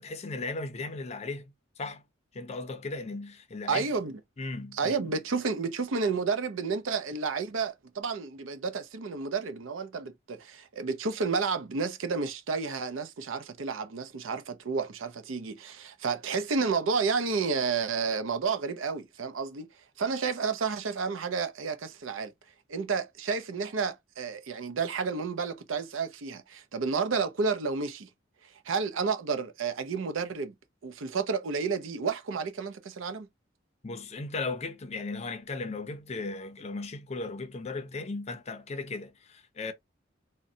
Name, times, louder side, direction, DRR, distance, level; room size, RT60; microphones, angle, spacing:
voice 1, 0.0-2.0 2.3-3.9 4.4-5.1 33.8-39.7, left 3 dB, 35° left, 0.5 m, -36 dB
voice 2, 3.7-4.2 4.7-19.7 20.0-22.3 22.7-28.1 28.7-30.5 30.8-33.3, right 5 dB, 80° right, 0.5 m, -31 dB
3.8 x 2.2 x 2.6 m
head